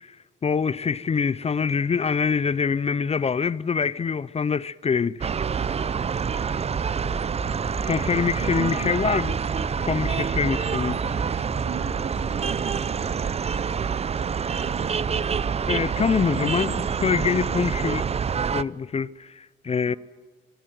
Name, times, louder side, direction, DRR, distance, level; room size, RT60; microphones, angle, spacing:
voice 1, 0.4-5.3 7.8-9.3 9.9-11.0 15.7-18.0 18.5-19.9, left 6 dB, 30° left, 0.6 m, -25 dB
sound 1, 5.2-18.6, right 6 dB, 30° right, 0.6 m, -27 dB
sound 2, 7.0-12.5, equal, ahead, 1.0 m, -38 dB
voice 2, 8.4-9.0 11.0-13.4 14.1-14.9 19.9-20.0, right 9 dB, 75° right, 2.7 m, -39 dB
24.5 x 20.5 x 7.7 m
cardioid pair, 90°, 20 cm